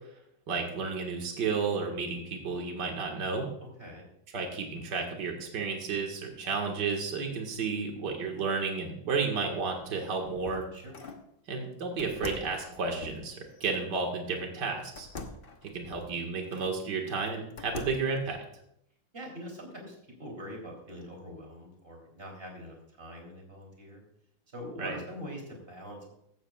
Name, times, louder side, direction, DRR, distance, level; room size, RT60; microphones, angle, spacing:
voice 1, 0.5-3.5 4.3-10.6 11.5-15.1 15.7-18.4 24.8-25.0, right 4 dB, 60° right, 2 dB, 2.4 m, -32 dB
voice 2, 3.6-4.1 10.7-11.0 19.1-24.0 24.5-26.1, equal, 25° right, 0 dB, 3.6 m, -43 dB
sound 1, 9.9-11.3 12.0-13.9 15.0-16.8 17.3-18.2, left 3 dB, 35° left, 1.0 m, -44 dB
15.5 x 12.5 x 2.4 m, 0.75 s
omnidirectional pair, 2.2 m